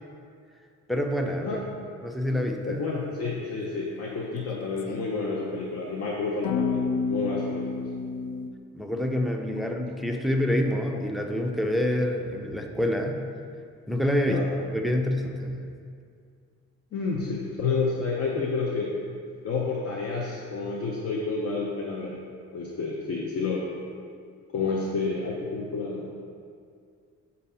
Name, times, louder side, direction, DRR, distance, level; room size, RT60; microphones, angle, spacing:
voice 1, 0.9-1.6 2.0-2.8 8.7-13.2 13.9-14.4 14.7-15.7, left 1 dB, ahead, 3 dB, 0.5 m, -27 dB
voice 2, 2.6-6.8 7.1-7.8 14.3-14.5 16.9-18.9 19.4-22.2 22.5-23.7 24.5-26.1, left 4 dB, 50° left, -3 dB, 0.7 m, -29 dB
sound 1, 4.5-5.0 6.4-8.5, left 5 dB, 85° left, 0.4 m, -29 dB
6.3 x 2.7 x 5.5 m, 2.2 s
cardioid pair, 90°, 30 cm